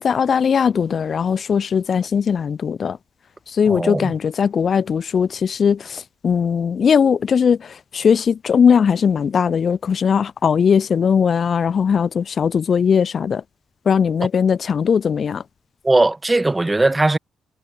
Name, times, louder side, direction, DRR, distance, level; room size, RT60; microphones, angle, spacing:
voice 1, 0.0-3.0 3.5-13.4 13.9-15.4, left 7 dB, 50° left, 0.4 m, -19 dB
voice 2, 3.7-4.1 15.8-17.2, right 2 dB, 15° right, 0.8 m, -18 dB
cardioid pair, 85°, 0 cm